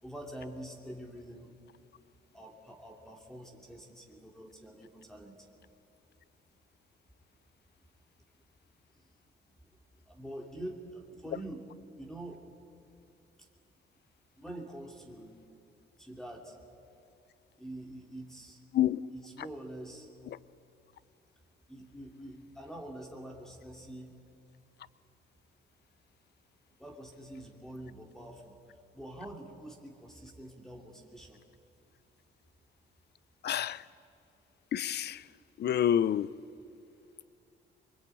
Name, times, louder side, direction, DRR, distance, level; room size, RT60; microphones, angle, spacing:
voice 1, 0.0-1.5 2.3-5.5 9.0-9.1 9.6-11.7 12.0-12.4 13.4-13.5 14.4-15.5 16.0-16.6 17.6-18.6 19.1-20.1 21.7-24.2 26.8-28.6 28.9-31.4, right 1 dB, 5° left, 2.7 m, -46 dB
voice 2, 33.4-33.9 34.7-35.3 35.6-36.3, left 10 dB, 55° left, 0.6 m, -28 dB
23.5 x 21.5 x 9.1 m
cardioid pair, 90°, 20 cm